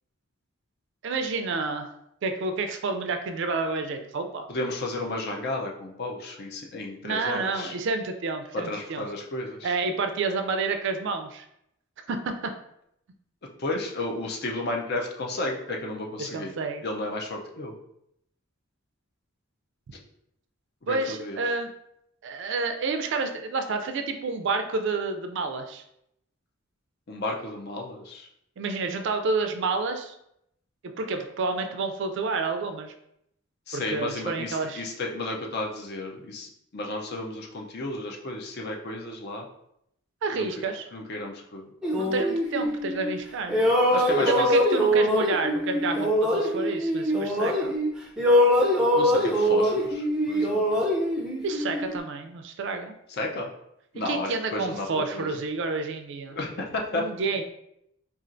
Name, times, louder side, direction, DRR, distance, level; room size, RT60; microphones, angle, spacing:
voice 1, 1.0-1.9 2.2-4.5 7.0-9.0 9.6-11.4 12.1-12.5 16.2-16.8 20.9-21.7 22.2-25.8 28.6-30.1 30.8-32.9 33.7-34.8 40.2-40.9 42.0-43.6 44.3-47.7 51.4-52.9 54.0-56.4 56.9-57.4, right 4 dB, 60° right, 7 dB, 0.4 m, -29 dB
voice 2, 4.5-7.8 8.5-9.8 13.6-16.5 16.8-17.7 20.9-21.4 27.1-28.3 33.7-39.4 40.3-40.6 40.9-41.7 43.9-44.5 48.9-50.6 53.1-53.5 53.9-55.4 56.3-57.0, left 2 dB, 50° left, 1 dB, 0.6 m, -33 dB
sound 1, 41.8-43.2 43.5-47.9 48.2-52.0, equal, 5° right, 0.5 m, -23 dB
4.2 x 2.4 x 2.5 m, 0.76 s
head